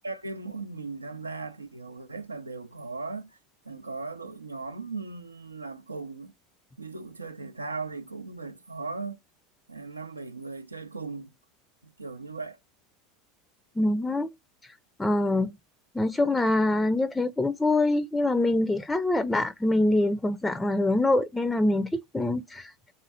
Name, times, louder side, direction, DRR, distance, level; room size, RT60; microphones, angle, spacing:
voice 1, 0.0-3.4 3.6-6.3 6.8-9.2 9.7-11.3 11.8-12.6, right 3 dB, 90° right, 0.4 m, -38 dB
voice 2, 13.8-14.3 14.6-14.7 15.0-15.5 15.9-22.9, left 2 dB, 10° left, 0.4 m, -25 dB
3.6 x 3.1 x 4.1 m
figure-of-eight pair, 80°, 0 cm